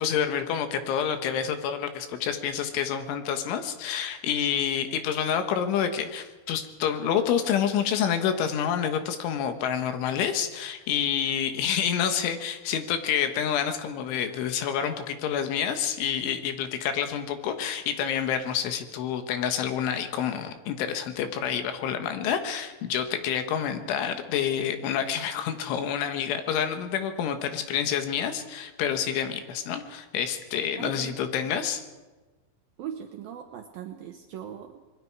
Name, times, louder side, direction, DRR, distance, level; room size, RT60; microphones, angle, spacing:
voice 1, 0.0-31.8, left 8 dB, 75° left, 7 dB, 3.7 m, -28 dB
voice 2, 30.8-31.6 32.8-34.9, right 9 dB, 85° right, 4 dB, 2.0 m, -40 dB
26.5 x 21.0 x 4.7 m, 1.2 s
omnidirectional pair, 5.8 m